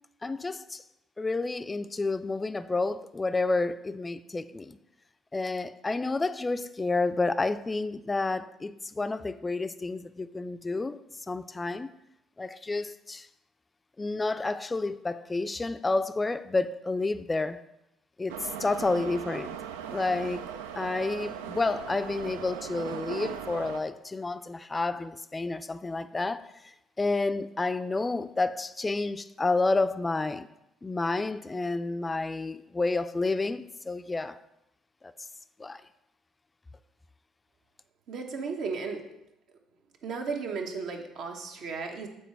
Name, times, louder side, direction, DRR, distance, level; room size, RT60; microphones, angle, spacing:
voice 1, 0.2-0.8 1.2-4.8 5.3-11.0 11.3-11.9 12.4-13.3 14.0-17.6 18.2-19.6 19.9-20.4 20.8-30.5 30.8-34.4 35.0-35.1 35.6-35.8, left 3 dB, 25° left, 0.4 m, -30 dB
Subway metro underground, 18.3-23.8, right 9 dB, 80° right, 0.3 m, -38 dB
voice 2, 38.1-39.0 40.0-42.1, right 5 dB, 60° right, 1.0 m, -34 dB
7.9 x 4.4 x 4.6 m
hypercardioid pair, 55°, 0 cm